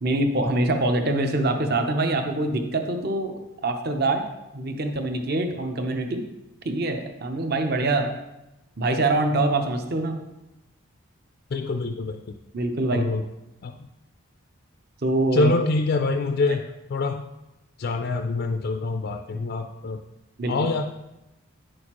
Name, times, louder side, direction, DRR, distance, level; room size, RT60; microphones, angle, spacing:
voice 1, 0.0-3.3 3.6-4.2 4.5-6.2 6.6-8.1 8.8-10.2 12.5-13.1 15.0-15.5 20.4-20.7, right 2 dB, 45° right, 5 dB, 0.7 m, -24 dB
voice 2, 11.5-12.4 12.9-13.3 13.6-13.9 15.3-17.3 17.8-20.0 20.5-20.8, left 3 dB, 45° left, 5 dB, 0.3 m, -25 dB
9.7 x 6.3 x 3.0 m, 0.95 s
head